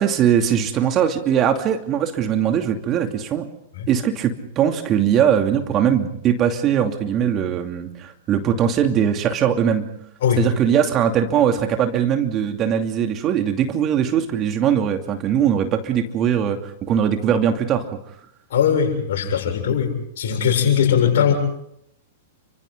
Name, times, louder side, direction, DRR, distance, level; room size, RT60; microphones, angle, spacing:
voice 1, 0.0-3.5 3.9-9.8 10.4-17.9, right 9 dB, 30° right, 5 dB, 2.7 m, -20 dB
voice 2, 18.5-21.3, left 8 dB, 60° left, 3 dB, 7.4 m, -20 dB
30.0 x 26.0 x 3.9 m, 0.73 s
figure-of-eight pair, 105°, 0 cm